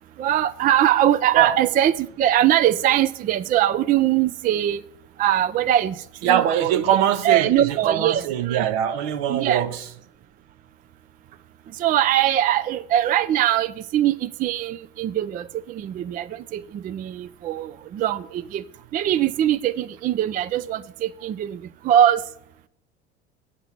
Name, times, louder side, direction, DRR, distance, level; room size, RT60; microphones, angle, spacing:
voice 1, 0.2-4.8 5.2-6.8 7.2-8.7 9.3-9.6 11.7-18.6 18.9-22.2, right 11 dB, 25° right, 0.4 m, -22 dB
voice 2, 6.2-9.8, right 10 dB, 65° right, 0.9 m, -22 dB
8.5 x 5.7 x 7.2 m
hypercardioid pair, 75°, 34 cm